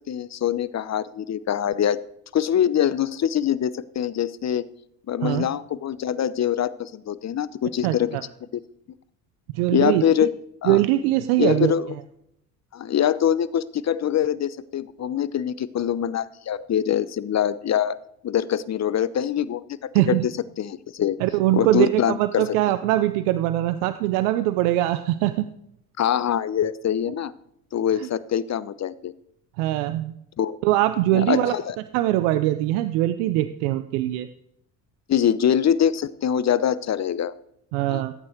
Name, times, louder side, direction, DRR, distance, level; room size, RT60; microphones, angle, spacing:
voice 1, 0.0-2.0 2.3-4.7 5.1-8.2 9.7-10.3 10.6-10.8 11.4-11.9 12.7-17.9 18.2-20.3 20.6-21.2 21.5-22.5 26.0-27.3 27.7-29.1 30.4-30.6 31.1-31.8 35.1-37.3 37.9-38.0, left 9 dB, 40° left, 17 dB, 0.8 m, -24 dB
voice 2, 7.8-8.2 9.5-10.0 10.7-11.7 19.9-20.3 21.2-25.5 28.0-28.1 29.6-30.1 30.6-31.5 31.9-34.3 37.7-38.1, right 15 dB, 80° right, 11 dB, 0.7 m, -22 dB
14.5 x 8.8 x 4.6 m, 0.76 s
hypercardioid pair, 65°, 42 cm